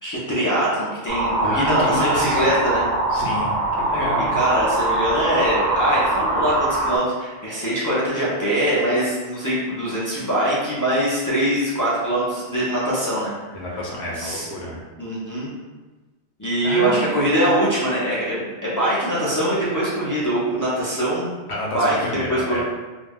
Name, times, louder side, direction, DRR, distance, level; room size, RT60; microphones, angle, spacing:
voice 1, 0.0-2.8 4.3-13.3 14.1-14.5 15.0-15.5 16.4-21.3 21.7-22.0 22.3-22.6, right 1 dB, 25° left, -9 dB, 0.4 m, -22 dB
sound 1, 1.1-7.0, right 2 dB, 45° right, 0.6 m, -22 dB
voice 2, 1.4-2.5 3.1-4.3 13.5-14.8 16.6-17.0 20.8-20.9 21.5-22.6, left 1 dB, 70° left, -3 dB, 0.9 m, -29 dB
2.5 x 2.2 x 3.4 m, 1.2 s
omnidirectional pair, 1.2 m